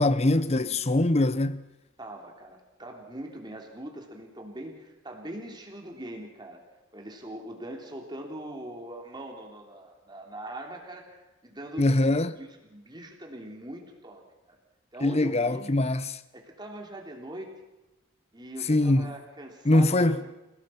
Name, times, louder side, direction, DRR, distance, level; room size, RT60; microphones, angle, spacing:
voice 1, 0.0-1.6 11.8-12.4 15.0-16.1 18.7-19.1 19.6-20.2, left 2 dB, 30° left, 0.8 m, -23 dB
voice 2, 2.0-6.6 6.9-12.0 12.4-14.2 14.5-14.6 14.9-15.7 16.3-17.5 18.3-20.3, right 1 dB, 20° right, 3.3 m, -42 dB
28.5 x 18.0 x 5.8 m
head